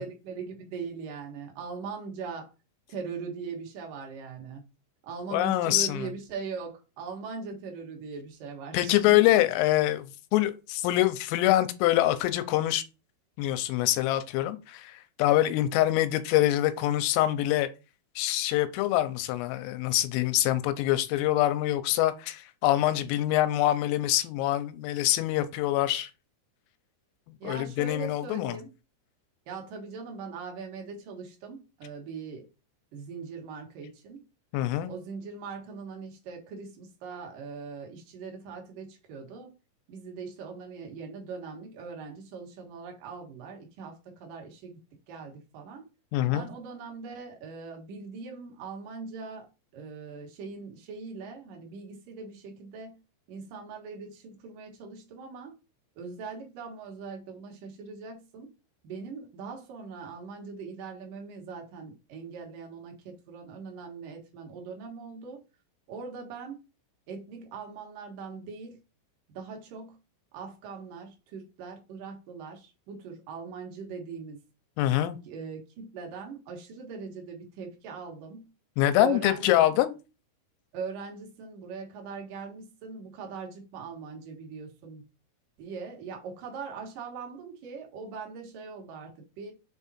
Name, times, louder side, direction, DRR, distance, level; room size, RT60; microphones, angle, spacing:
voice 1, 0.0-2.5 2.9-4.7 5.0-9.4 27.4-28.7 29.5-32.5 32.9-34.2 34.9-39.5 39.9-44.8 45.1-45.9 46.3-49.5 49.7-53.0 53.3-55.6 56.0-58.5 58.8-65.4 65.9-66.6 67.1-68.8 69.3-70.0 70.3-74.4 75.2-78.5 79.0-79.6 80.7-85.1 85.6-89.5, right 5 dB, 65° right, 2.2 m, -41 dB
voice 2, 5.3-6.0 8.7-12.8 13.4-17.7 18.2-26.1 27.4-28.6 34.5-34.9 46.1-46.5 74.8-75.2 78.8-79.9, left 14 dB, 90° left, 3.3 m, -25 dB
7.1 x 3.6 x 4.2 m
omnidirectional pair, 5.9 m